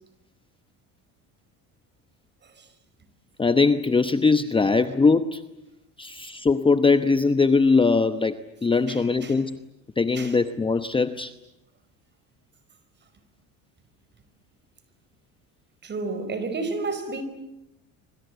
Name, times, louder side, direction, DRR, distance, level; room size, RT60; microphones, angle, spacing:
voice 1, 3.4-5.4 6.0-9.6 10.0-11.3, left 4 dB, 15° left, 0.9 m, -21 dB
voice 2, 8.9-9.4 10.2-10.4 15.8-17.2, right 3 dB, 30° right, 5.2 m, -31 dB
26.0 x 24.5 x 8.0 m
cardioid pair, 115°, 33 cm